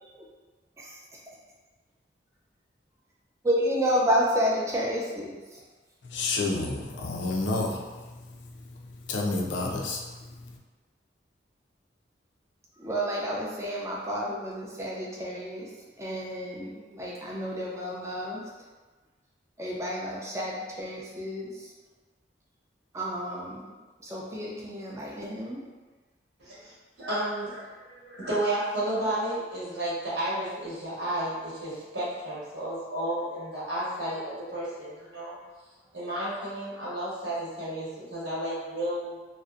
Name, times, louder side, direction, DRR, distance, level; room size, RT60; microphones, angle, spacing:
voice 1, 3.4-5.4 12.8-15.7 16.0-18.4 19.6-21.5 22.9-23.7 24.0-25.6, equal, 15° right, -4 dB, 0.4 m, -30 dB
voice 2, 6.0-10.6, left 3 dB, 80° left, -1 dB, 0.4 m, -31 dB
voice 3, 26.4-26.7 27.0-35.4 35.9-39.2, right 1 dB, 80° right, -9 dB, 1.1 m, -32 dB
2.6 x 2.0 x 2.4 m, 1.3 s
head